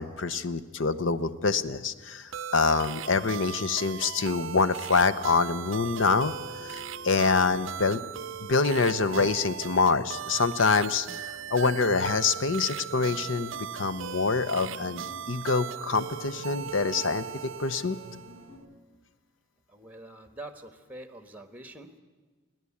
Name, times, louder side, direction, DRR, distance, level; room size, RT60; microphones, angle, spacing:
voice 1, 0.0-6.3 6.6-8.0 8.4-17.3 17.6-18.0, left 4 dB, 65° left, 12 dB, 0.8 m, -26 dB
sound 1, 2.3-18.5, right 8 dB, 65° right, 0.5 m, -38 dB
sound 2, 5.2-18.6, equal, 30° left, 4.8 m, -50 dB
voice 2, 19.7-21.9, right 2 dB, 10° right, 9 dB, 1.1 m, -45 dB
29.0 x 11.0 x 8.5 m, 1.4 s
head